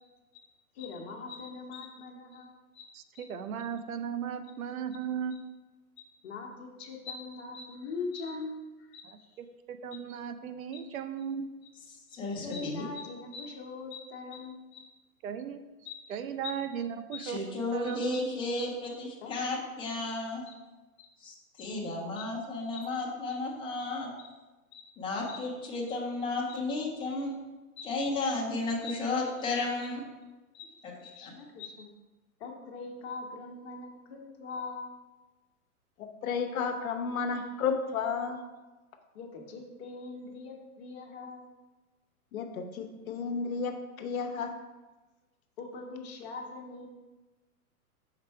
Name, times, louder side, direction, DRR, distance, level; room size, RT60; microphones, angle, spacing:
voice 1, 0.7-3.3 6.0-9.3 10.7-10.8 12.1-14.9 15.8-16.0 16.4-16.5 17.1-17.2 17.9-18.0 19.2-19.3 20.5-20.6 21.0-21.1 21.6-21.7 22.2-22.3 22.7-22.9 23.3-23.4 23.8-23.9 24.2-24.3 24.7-24.8 25.3-25.4 26.5-26.6 27.8-27.9 28.8-29.0 30.5-31.9 32.4-34.9 39.1-41.5 45.6-46.9, left 4 dB, 45° left, 1 dB, 1.1 m, -42 dB
voice 2, 2.9-5.3 9.4-11.5 15.2-15.6 16.1-18.2, right 8 dB, 65° right, 10 dB, 0.6 m, -36 dB
voice 3, 12.1-12.8 17.2-20.4 21.2-24.1 25.0-27.3 27.8-30.0 30.8-30.9 31.2-31.3, left 2 dB, 10° left, -3 dB, 0.8 m, -33 dB
voice 4, 36.0-38.4 42.3-44.5, left 5 dB, 65° left, 5 dB, 0.9 m, -32 dB
5.8 x 4.4 x 4.6 m, 1.2 s
hypercardioid pair, 140°, 46 cm